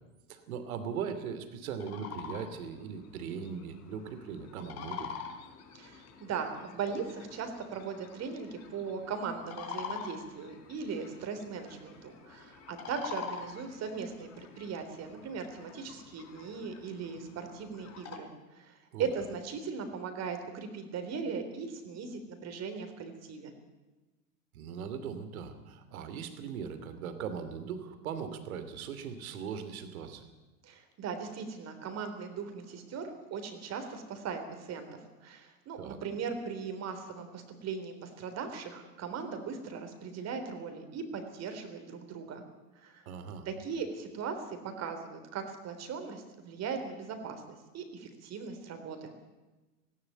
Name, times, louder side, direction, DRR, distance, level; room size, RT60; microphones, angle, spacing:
voice 1, 0.3-5.2 18.9-19.1 24.5-30.3 35.8-36.0 43.1-43.5, right 7 dB, 60° right, 9 dB, 2.9 m, -39 dB
sound 1, 1.7-18.2, left 7 dB, 35° left, 3.8 m, -46 dB
voice 2, 5.7-23.5 30.6-42.4 42.8-43.0 43.5-49.1, right 5 dB, 30° right, 7 dB, 3.8 m, -39 dB
18.5 x 17.5 x 9.1 m, 1.2 s
figure-of-eight pair, 90°, 48 cm